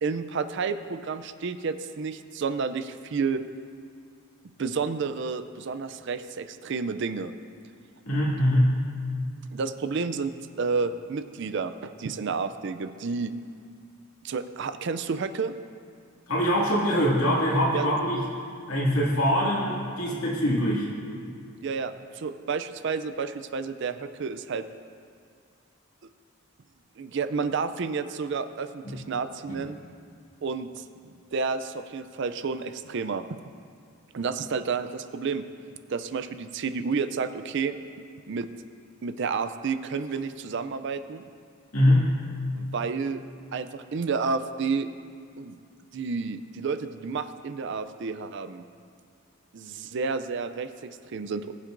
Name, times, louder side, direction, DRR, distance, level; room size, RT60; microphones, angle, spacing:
voice 1, 0.0-3.4 4.6-7.3 9.5-10.3 10.6-13.3 14.2-15.5 17.7-17.8 21.6-24.6 27.0-29.8 30.4-30.8 31.3-33.2 34.1-35.4 35.9-37.8 38.3-38.5 39.0-41.2 42.6-43.2 43.5-44.9 45.4-45.5 45.9-48.6 49.5-51.5, right 5 dB, 55° right, 11 dB, 0.4 m, -30 dB
voice 2, 8.0-8.8 16.3-18.2 18.7-20.9 28.8-28.9 29.5-29.6 41.7-42.1, equal, 80° left, -5 dB, 2.3 m, -23 dB
21.0 x 7.4 x 2.6 m, 2.3 s
head